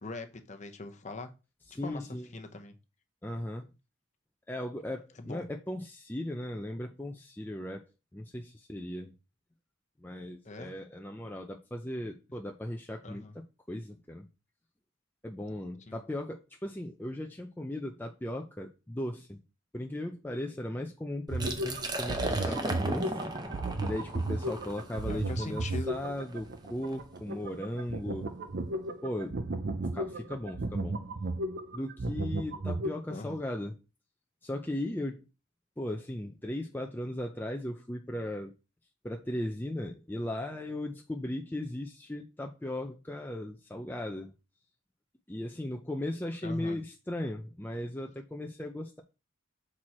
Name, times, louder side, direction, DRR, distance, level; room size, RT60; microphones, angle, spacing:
voice 1, 0.0-1.3 1.8-2.7 5.2-5.5 10.4-10.7 13.0-13.4 15.9-16.0 22.1-22.6 25.1-25.9 33.1-33.4 46.4-46.8, left 2 dB, 35° left, 6 dB, 0.8 m, -41 dB
voice 2, 1.7-2.3 3.2-3.7 4.5-7.9 8.1-9.1 10.0-13.2 13.7-14.3 15.2-19.4 19.7-23.3 23.8-28.3 29.0-29.4 29.9-31.0 31.7-33.8 34.4-35.2 35.8-38.5 39.0-44.3 45.3-49.0, left 1 dB, 10° left, 2 dB, 0.5 m, -37 dB
Liquid, 21.3-27.0, right 2 dB, 20° right, 0.8 m, -37 dB
sound 1, 21.3-32.9, right 2 dB, 50° right, 0.6 m, -34 dB
6.1 x 4.6 x 4.3 m, 0.30 s
head